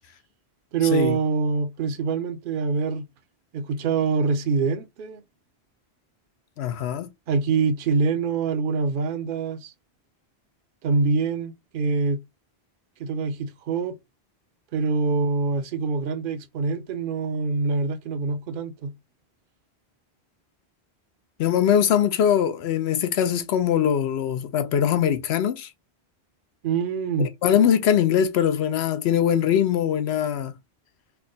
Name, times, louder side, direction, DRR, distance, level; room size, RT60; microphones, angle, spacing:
voice 1, 0.7-3.1 3.5-5.2 7.3-9.7 10.8-12.2 13.0-14.0 14.7-18.9 26.6-27.3, right 4 dB, 60° right, 0.7 m, -25 dB
voice 2, 6.6-7.1 21.4-25.7 27.4-30.5, left 9 dB, 85° left, 0.9 m, -22 dB
3.4 x 2.2 x 3.7 m
omnidirectional pair, 1.1 m